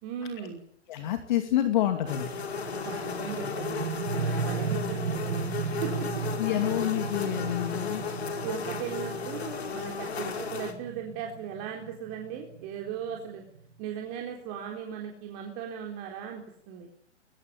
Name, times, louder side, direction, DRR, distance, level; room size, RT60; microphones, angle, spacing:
voice 1, 0.0-0.6 2.7-3.9 4.2-5.5 5.8-6.2 8.4-13.4 13.8-16.9, right 8 dB, 30° right, 1 dB, 4.0 m, -38 dB
voice 2, 0.9-2.3 6.4-8.0, left 12 dB, 40° left, 7 dB, 2.5 m, -28 dB
sound 1, 2.1-10.7, left 6 dB, 60° left, 4.5 m, -35 dB
sound 2, 2.3-13.8, right 5 dB, 55° right, 4.4 m, -36 dB
22.0 x 18.5 x 9.0 m, 0.69 s
figure-of-eight pair, 120°, 35 cm